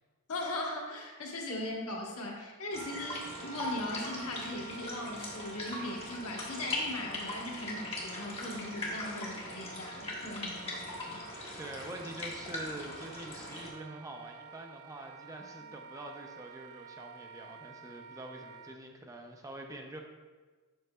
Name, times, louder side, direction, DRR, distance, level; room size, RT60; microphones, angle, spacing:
voice 1, 0.3-11.2, left 1 dB, 75° left, -1 dB, 1.2 m, -39 dB
sound 1, 2.7-13.7, left 2 dB, 25° left, 1.3 m, -40 dB
Wind instrument woodwind instrument, 2.7-18.8, right 6 dB, 85° right, 0.3 m, -50 dB
voice 2, 11.6-20.0, right 1 dB, 15° right, 2 dB, 0.5 m, -45 dB
7.7 x 5.7 x 2.3 m, 1.4 s
head